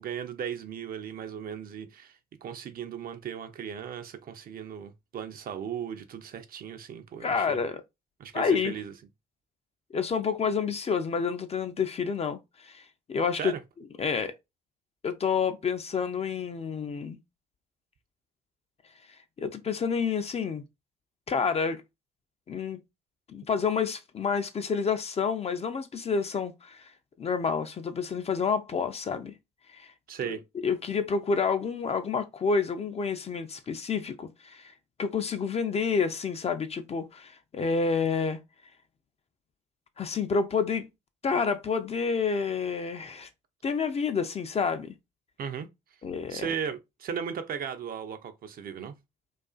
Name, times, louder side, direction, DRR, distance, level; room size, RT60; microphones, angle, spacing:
voice 1, 0.0-7.6 8.2-8.9 13.3-13.6 30.1-30.4 45.4-45.7 46.3-49.0, right 8 dB, 45° right, 0.4 m, -36 dB
voice 2, 7.2-7.8 8.3-8.7 9.9-13.5 14.0-14.3 15.0-17.2 19.4-20.6 21.3-21.8 22.5-22.8 23.3-26.9 27.2-29.3 29.7-29.9 30.6-34.7 35.0-38.4 40.0-40.9 41.2-43.3 43.6-44.9 46.0-46.5, left 5 dB, 30° left, 0.4 m, -29 dB
2.4 x 2.3 x 2.3 m
hypercardioid pair, 45°, 21 cm